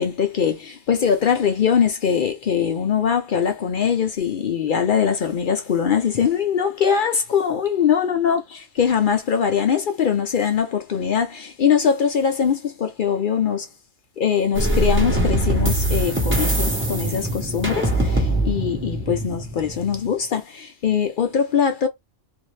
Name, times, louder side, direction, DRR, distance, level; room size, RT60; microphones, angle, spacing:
voice 1, 0.0-13.7 14.2-21.9, left 7 dB, 65° left, 0.5 m, -22 dB
sound 1, 14.5-20.1, right 1 dB, 10° right, 0.6 m, -22 dB
2.7 x 2.5 x 3.1 m
omnidirectional pair, 1.4 m